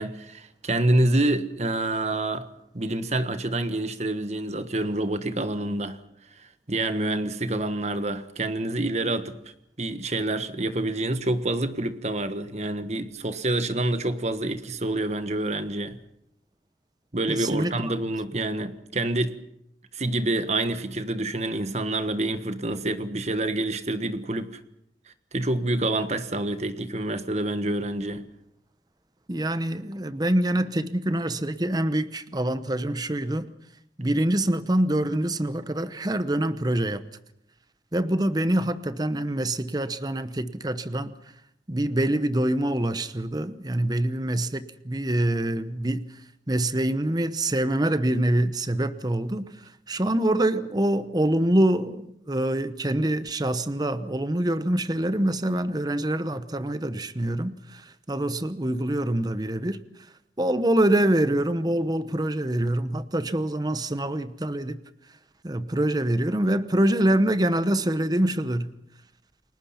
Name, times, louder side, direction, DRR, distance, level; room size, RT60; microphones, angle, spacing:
voice 1, 0.0-2.5 2.7-6.0 6.3-9.4 9.8-16.0 17.1-19.4 19.9-24.6 25.1-28.2, right 2 dB, 40° right, 1.5 m, -27 dB
voice 2, 17.3-17.9 29.3-33.5 34.0-37.0 37.9-41.1 41.7-46.1 46.5-49.5 49.9-59.8 60.4-64.8 65.4-68.7, right 1 dB, 20° right, 0.9 m, -25 dB
30.0 x 21.0 x 5.8 m
head